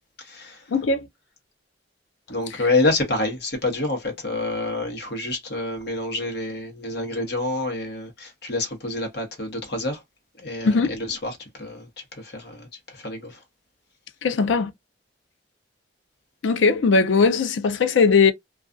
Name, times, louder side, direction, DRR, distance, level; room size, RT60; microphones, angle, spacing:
voice 1, 0.2-0.6 2.3-10.0 10.4-13.4, left 2 dB, 60° left, 1.0 m, -28 dB
voice 2, 0.7-1.1 10.6-10.9 14.2-14.7 16.4-18.3, left 4 dB, 90° left, 0.5 m, -19 dB
2.4 x 2.3 x 2.4 m
head